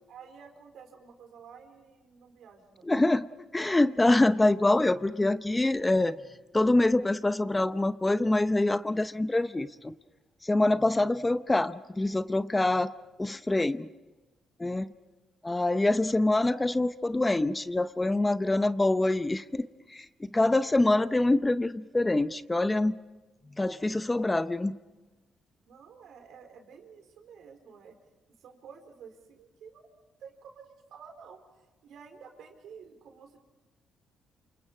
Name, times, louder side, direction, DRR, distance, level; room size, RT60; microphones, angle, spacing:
voice 1, 0.1-2.9 25.6-28.0 28.4-29.9 30.2-33.4, right 6 dB, 75° right, 4 dB, 4.5 m, -51 dB
voice 2, 2.9-3.3 3.5-6.2 6.5-10.0 10.4-12.9 13.2-13.9 14.6-14.9 15.4-23.0 23.6-24.8, left 2 dB, 15° left, 13 dB, 0.7 m, -25 dB
28.0 x 28.0 x 5.0 m, 1.2 s
cardioid pair, 90°, 0 cm